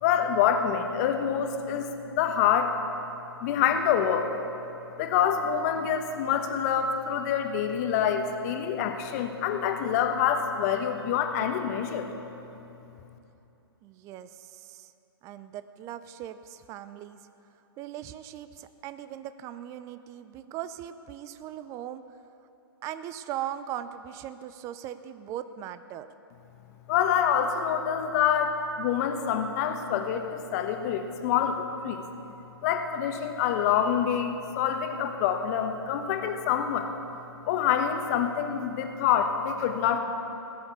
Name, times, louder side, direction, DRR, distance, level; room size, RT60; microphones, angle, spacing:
voice 1, 0.0-2.8 3.4-4.3 5.0-12.1 26.9-32.0 32.6-36.9 37.5-40.0, left 8 dB, 40° left, 6 dB, 1.2 m, -26 dB
voice 2, 13.8-14.9 15.2-17.2 17.8-22.1 22.8-26.1, right 11 dB, 25° right, 12 dB, 0.4 m, -39 dB
17.5 x 7.0 x 8.2 m, 2.9 s
hypercardioid pair, 125°, 13 cm